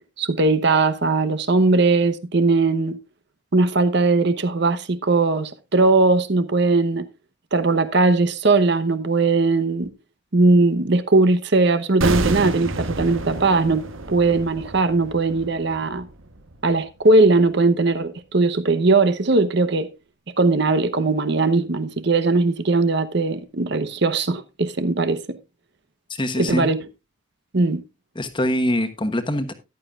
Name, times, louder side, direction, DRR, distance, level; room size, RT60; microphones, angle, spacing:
voice 1, 0.2-3.0 3.5-7.1 7.5-9.9 10.3-16.1 16.6-19.9 20.4-25.4 26.4-26.8 27.5-27.8, right 3 dB, 55° right, 0.9 m, -19 dB
sound 1, 12.0-17.0 17.3-17.4, right 2 dB, 75° right, 1.1 m, -29 dB
voice 2, 26.1-26.7 28.1-29.5, equal, 25° left, 1.2 m, -23 dB
14.0 x 11.0 x 2.4 m
head